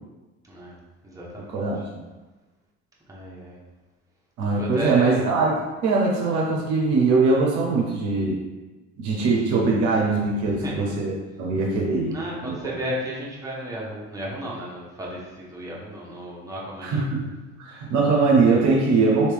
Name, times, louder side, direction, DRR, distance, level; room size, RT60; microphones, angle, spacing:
voice 1, 0.4-1.6 3.1-3.6 4.6-5.4 10.4-10.9 12.1-17.1, equal, 10° right, -4 dB, 0.9 m, -34 dB
voice 2, 1.5-1.9 4.4-5.5 5.8-8.4 9.0-12.6 16.8-17.3 17.6-19.3, right 3 dB, 50° right, -2 dB, 0.8 m, -21 dB
3.0 x 2.8 x 3.4 m, 1.2 s
figure-of-eight pair, 60°, 36 cm